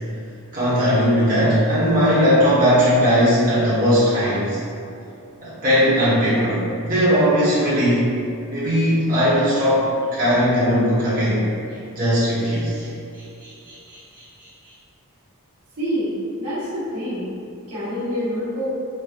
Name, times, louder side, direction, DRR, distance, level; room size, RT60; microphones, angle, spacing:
voice 1, 0.5-4.6 5.4-8.1 8.5-11.4 11.9-12.9 13.4-14.2, equal, 40° right, -12 dB, 1.2 m, -19 dB
voice 2, 15.8-17.3 17.7-18.7, equal, 80° right, -11 dB, 1.3 m, -26 dB
4.6 x 2.1 x 2.4 m, 2.6 s
head